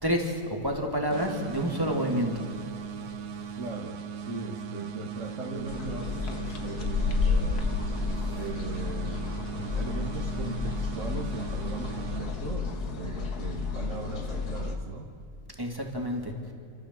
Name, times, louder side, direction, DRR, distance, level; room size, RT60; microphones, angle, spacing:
voice 1, 0.0-2.4 15.6-16.5, equal, 15° right, 1 dB, 2.6 m, -29 dB
sound 1, 1.1-12.8, right 7 dB, 85° right, 1.6 m, -39 dB
voice 2, 3.6-7.9 8.3-9.3 9.6-15.1, right 3 dB, 55° right, 0 dB, 1.9 m, -38 dB
sound 2, 5.7-14.7, left 4 dB, 85° left, 2.2 m, -31 dB
29.0 x 14.0 x 7.7 m, 2.8 s
omnidirectional pair, 1.6 m